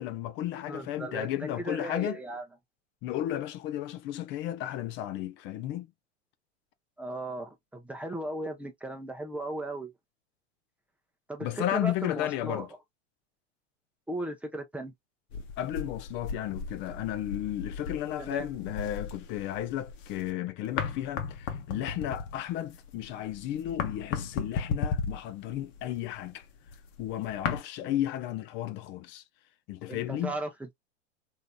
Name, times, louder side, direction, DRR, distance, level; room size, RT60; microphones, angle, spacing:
voice 1, 0.0-2.2 3.0-5.9 11.4-12.7 15.6-26.5 27.0-29.2 29.7-30.3, left 12 dB, 35° left, 0.4 m, -33 dB
voice 2, 0.7-2.4 7.0-9.9 11.3-12.7 14.1-14.9 18.2-18.5 29.9-30.7, right 1 dB, 5° right, 0.7 m, -36 dB
sound 1, 15.3-20.3 20.6-27.6, left 6 dB, 60° left, 0.9 m, -36 dB
3.1 x 2.7 x 2.2 m
hypercardioid pair, 125°, 36 cm